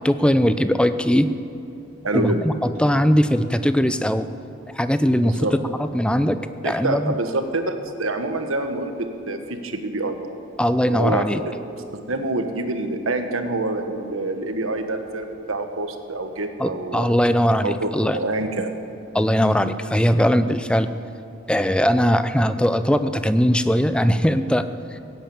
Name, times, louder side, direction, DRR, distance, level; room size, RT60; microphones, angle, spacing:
voice 1, 0.0-1.3 2.1-4.3 4.7-5.5 5.8-6.4 6.6-7.1 10.6-11.4 16.6-18.2 19.1-20.9 21.5-25.0, equal, 5° left, 11 dB, 0.4 m, -20 dB
voice 2, 2.0-2.4 5.2-5.6 6.6-7.7 8.0-10.2 10.9-11.3 11.9-17.1 17.6-18.7, right 2 dB, 85° right, 7 dB, 1.4 m, -26 dB
16.0 x 9.1 x 8.7 m, 2.8 s
head